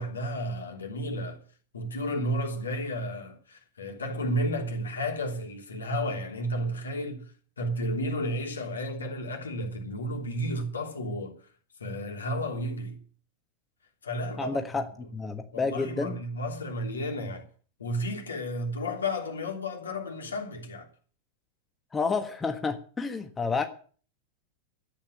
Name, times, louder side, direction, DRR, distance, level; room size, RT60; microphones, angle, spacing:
voice 1, 0.0-1.4 1.7-11.4 11.8-13.0 14.0-14.6 15.5-17.4 17.8-20.9, equal, 70° left, 3.2 m, -32 dB
voice 2, 14.4-14.8 15.1-16.2 21.9-23.7, left 4 dB, 15° left, 1.4 m, -29 dB
13.5 x 8.8 x 8.3 m
figure-of-eight pair, 90°, 0 cm